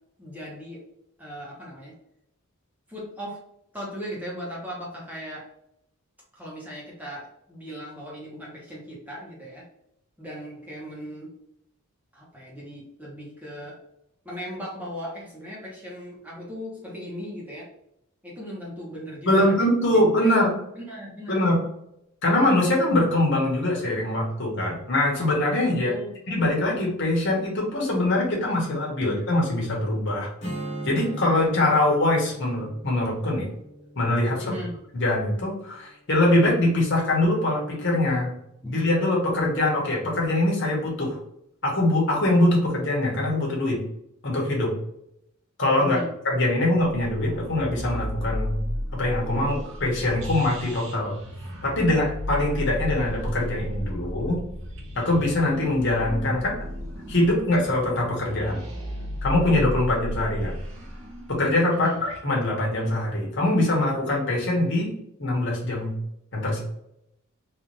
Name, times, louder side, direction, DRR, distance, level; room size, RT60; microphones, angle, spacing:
voice 1, 0.2-0.8 1.2-1.9 2.9-3.4 3.7-5.5 6.3-9.6 10.2-11.3 12.1-13.8 14.2-17.7 18.2-20.3 20.8-21.4 25.8-26.4 29.0-29.1 34.4-34.7 38.6-38.7 45.8-46.1 60.4-60.5 61.7-62.0, equal, 5° right, -5 dB, 1.3 m, -38 dB
voice 2, 19.2-20.5 21.3-21.6 22.2-25.9 26.3-30.3 30.8-33.5 34.0-34.5 34.9-38.3 38.6-41.2 41.6-43.8 44.2-44.7 45.6-46.0 46.2-48.6 48.9-51.1 51.6-54.4 54.9-56.5 57.1-58.6 59.2-60.6 61.3-64.9 65.2-66.0 66.3-66.6, left 1 dB, 55° left, -3 dB, 1.5 m, -23 dB
Strum, 30.4-35.7, right 1 dB, 35° left, 1.5 m, -38 dB
sound 1, 46.8-62.2, left 1 dB, 65° right, 1.1 m, -34 dB
3.7 x 2.9 x 3.3 m, 0.79 s
head